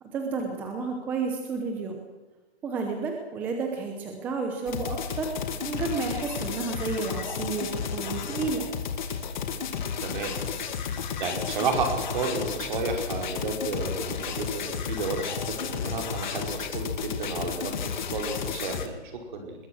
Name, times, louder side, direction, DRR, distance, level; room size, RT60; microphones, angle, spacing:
voice 1, 0.0-2.0 2.6-5.4 5.6-8.7, right 4 dB, 5° right, 3 dB, 0.8 m, -31 dB
sound 1, 4.7-18.9, left 7 dB, 40° left, 2.2 m, -32 dB
voice 2, 10.0-10.3 11.2-19.5, right 4 dB, 45° right, 3 dB, 5.3 m, -32 dB
22.5 x 21.0 x 6.3 m, 1.2 s
hypercardioid pair, 165°, 34 cm